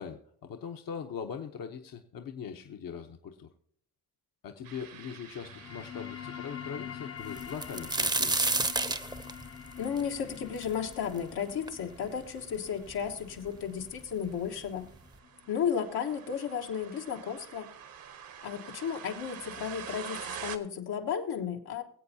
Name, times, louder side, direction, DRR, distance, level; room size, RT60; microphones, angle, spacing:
voice 1, 0.0-3.5 4.4-8.5, left 7 dB, 60° left, 4 dB, 1.0 m, -41 dB
sound 1, 4.6-20.6, right 8 dB, 65° right, 1.2 m, -48 dB
sound 2, 5.3-16.4, left 9 dB, 40° left, 0.7 m, -46 dB
sound 3, 7.4-11.2 11.7-11.8 12.5-12.6 12.9-13.6 14.5-14.6 14.9-15.1, right 2 dB, 10° right, 0.7 m, -30 dB
voice 2, 9.8-14.9 15.5-17.7 18.4-21.8, left 7 dB, 80° left, 2 dB, 1.5 m, -34 dB
23.5 x 8.0 x 2.8 m, 0.63 s
cardioid pair, 80°, 38 cm